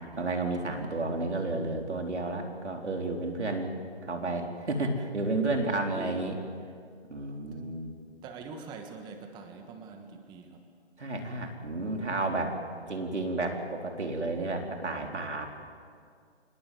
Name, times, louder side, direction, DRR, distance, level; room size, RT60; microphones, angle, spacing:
voice 1, 0.1-3.7 4.0-6.4 7.1-8.0 11.0-12.5 12.9-15.5, right 2 dB, 90° right, 2 dB, 4.2 m, -31 dB
voice 2, 0.7-1.3 5.5-5.6 5.9-6.3 8.2-10.7, right 4 dB, 15° right, 5 dB, 1.3 m, -45 dB
27.0 x 20.0 x 7.8 m, 2.2 s
hypercardioid pair, 150°, 33 cm